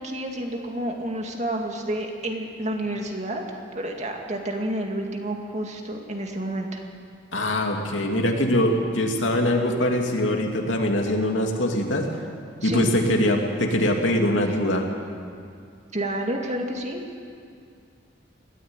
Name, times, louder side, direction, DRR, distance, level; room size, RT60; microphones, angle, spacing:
voice 1, 0.0-3.4 3.7-6.8 12.6-12.9 15.9-17.0, right 1 dB, 40° right, 2 dB, 2.2 m, -29 dB
voice 2, 7.3-12.1 12.6-14.9, left 1 dB, 85° left, 2 dB, 2.6 m, -23 dB
21.0 x 14.0 x 8.9 m, 2.3 s
head